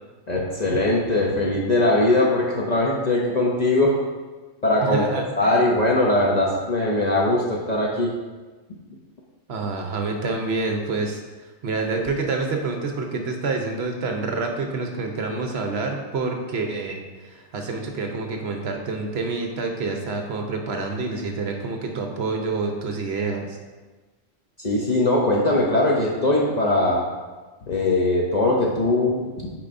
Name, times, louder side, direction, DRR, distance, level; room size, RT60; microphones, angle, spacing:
voice 1, 0.3-4.0 4.6-5.0 5.4-8.2 24.6-27.0 27.7-29.5, left 2 dB, 45° left, -3 dB, 0.6 m, -21 dB
voice 2, 4.8-5.7 9.5-11.2 11.6-23.6, right 3 dB, 60° right, 3 dB, 0.9 m, -27 dB
8.6 x 4.7 x 2.6 m, 1.3 s
omnidirectional pair, 1.3 m